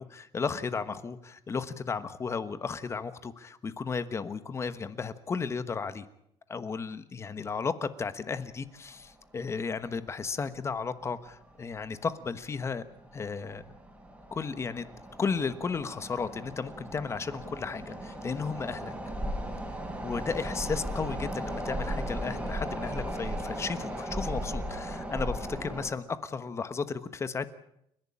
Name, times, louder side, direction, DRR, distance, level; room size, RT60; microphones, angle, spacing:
voice 1, 0.0-6.1 6.5-12.8 13.1-13.6 14.3-14.8 15.2-18.9 20.0-27.5, left 5 dB, 25° left, 13 dB, 1.2 m, -34 dB
sound 1, 9.0-9.1 9.4-9.5 10.2-10.4 10.7-10.9 11.4-11.8 12.3-25.9, equal, 10° right, 4.0 m, -37 dB
29.5 x 11.5 x 8.7 m, 0.77 s
cardioid pair, 150°, 11 cm